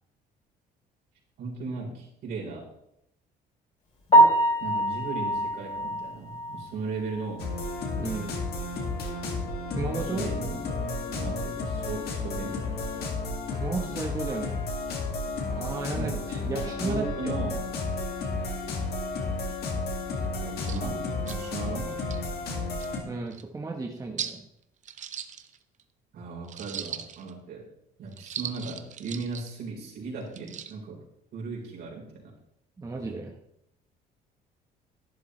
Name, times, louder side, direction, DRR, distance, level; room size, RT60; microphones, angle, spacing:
voice 1, 1.4-2.7 4.6-7.5 10.0-13.1 16.0-16.2 16.5-17.7 20.4-21.9 26.1-27.7 28.0-31.0 31.3-32.3, right 4 dB, 65° right, -2 dB, 4.1 m, -37 dB
Piano, 4.1-8.1 8.4-8.6 9.0-9.1 9.5-9.6 12.7-12.8 21.3-21.5, right 1 dB, 40° left, 4.0 m, -24 dB
sound 1, 7.4-23.0, left 3 dB, 70° left, 2.2 m, -32 dB
voice 2, 8.0-8.3 9.7-10.2 13.5-14.6 15.5-17.4 23.0-24.4 32.8-33.3, right 3 dB, 20° right, 1 dB, 1.1 m, -34 dB
sound 2, 20.2-20.3 20.6-20.8 21.3-21.4 21.9-22.2 22.8-22.9 23.3-23.4 24.2-24.4 24.8-25.8 26.5-27.3 28.1-29.5 30.2-30.7, right 9 dB, 45° right, 0.8 m, -38 dB
11.5 x 10.5 x 3.2 m, 0.79 s
cardioid pair, 110°, 17 cm